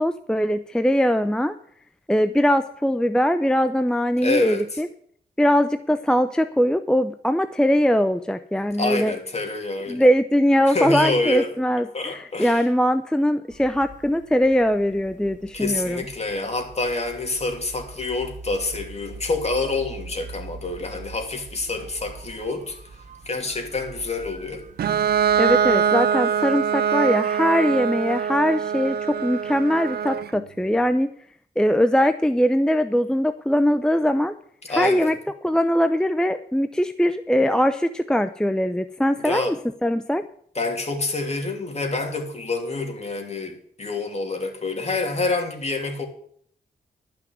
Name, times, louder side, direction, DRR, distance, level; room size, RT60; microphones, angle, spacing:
voice 1, 0.0-1.5 2.1-4.9 5.4-9.1 9.9-16.0 25.4-31.1 31.6-34.3 34.7-35.2 35.4-39.6 39.8-40.2, equal, 5° left, 9 dB, 0.6 m, -21 dB
voice 2, 4.2-4.6 8.8-10.1 10.7-11.5 11.9-12.6 15.5-22.8 23.2-24.6 34.7-35.1 39.2-39.6 40.5-46.1, left 3 dB, 40° left, 3 dB, 2.9 m, -27 dB
sound 1, 13.5-25.8, right 3 dB, 50° right, 0.9 m, -43 dB
Bowed string instrument, 24.8-30.4, right 8 dB, 70° right, 0.4 m, -23 dB
11.5 x 6.1 x 9.3 m, 0.63 s
cardioid pair, 80°, 17 cm